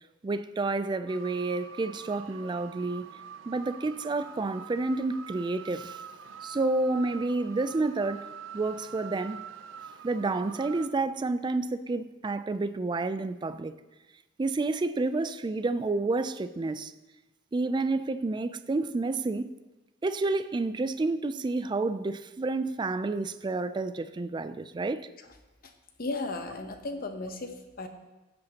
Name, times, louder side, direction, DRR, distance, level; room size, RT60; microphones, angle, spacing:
voice 1, 0.2-3.1 3.5-6.0 6.4-8.3 8.5-9.4 10.0-13.7 14.4-16.9 17.5-19.5 20.0-25.1, right 3 dB, 25° right, 0.3 m, -29 dB
sound 1, 1.1-10.9, right 7 dB, 80° right, 0.5 m, -45 dB
voice 2, 26.0-27.9, left 2 dB, 50° left, 0.9 m, -35 dB
15.5 x 7.7 x 2.9 m
head